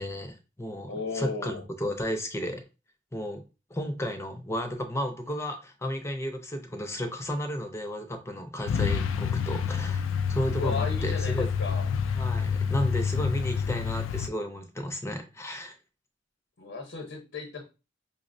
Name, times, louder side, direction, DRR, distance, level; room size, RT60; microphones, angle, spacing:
voice 1, 0.0-2.6 3.1-3.4 3.7-10.0 10.3-11.5 12.1-15.7, equal, 15° left, 6 dB, 0.5 m, -33 dB
voice 2, 0.9-1.6 10.5-11.9 16.6-17.6, left 4 dB, 65° left, 2 dB, 0.8 m, -35 dB
Truck, 8.7-14.3, left 6 dB, 85° left, 0.3 m, -28 dB
5.3 x 2.0 x 2.6 m, 0.30 s
head